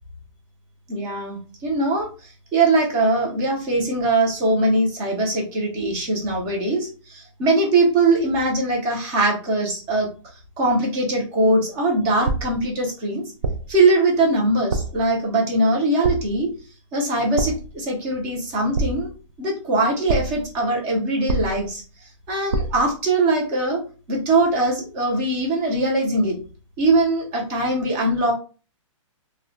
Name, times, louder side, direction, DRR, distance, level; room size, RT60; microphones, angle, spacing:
voice 1, 0.9-2.1 2.5-10.1 10.6-13.2 13.7-16.5 16.9-19.1 19.4-21.8 22.3-23.8 24.1-26.4 26.8-28.3, right 2 dB, 15° right, -1 dB, 0.5 m, -21 dB
sound 1, 12.3-12.7 13.4-13.8 14.7-15.1 16.0-16.5 17.4-17.8 18.7-19.3 20.1-20.5 21.3-21.8 22.5-22.9, right 2 dB, 75° right, 0.5 m, -26 dB
2.1 x 2.1 x 3.7 m, 0.37 s
hypercardioid pair, 170°, 17 cm